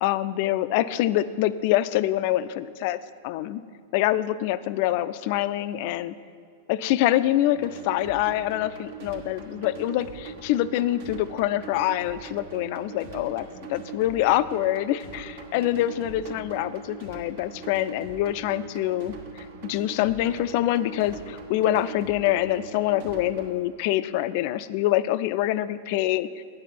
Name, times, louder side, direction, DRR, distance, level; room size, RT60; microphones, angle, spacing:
voice 1, 0.0-3.0 3.2-3.6 3.9-6.1 6.7-26.4, left 14 dB, 55° left, 15 dB, 0.3 m, -25 dB
sound 1, 7.5-23.5, right 5 dB, 65° right, 1.2 m, -41 dB
9.2 x 5.4 x 5.8 m, 2.3 s
hypercardioid pair, 115°, 0 cm